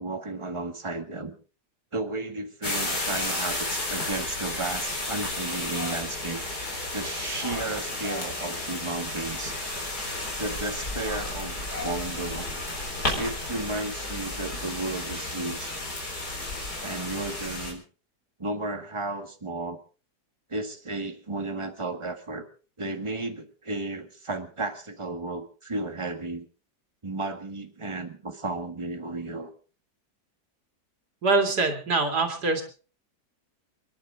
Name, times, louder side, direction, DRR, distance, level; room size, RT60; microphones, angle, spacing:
voice 1, 0.0-1.3 1.9-6.4 6.9-9.6 10.4-12.5 13.1-15.7 16.8-17.8 18.4-19.8 20.5-22.4 22.8-26.5 27.0-29.5, right 2 dB, 20° right, 6 dB, 1.6 m, -33 dB
sound 1, 2.6-17.7, left 2 dB, 70° left, 4.7 m, -32 dB
voice 2, 31.2-32.6, right 3 dB, 75° right, 4 dB, 3.1 m, -24 dB
28.5 x 10.5 x 3.7 m, 0.38 s
omnidirectional pair, 1.7 m